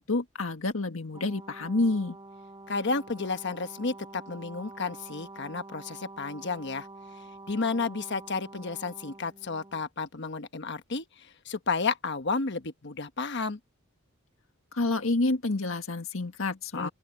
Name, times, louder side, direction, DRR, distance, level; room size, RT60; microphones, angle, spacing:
voice 1, 0.0-2.2 14.7-16.9, left 2 dB, 80° left, 1.7 m, -28 dB
Brass instrument, 1.1-9.8, right 2 dB, 20° right, 6.0 m, -47 dB
voice 2, 2.7-6.9 7.5-13.6 16.7-16.9, left 4 dB, 55° left, 1.2 m, -32 dB
open air
head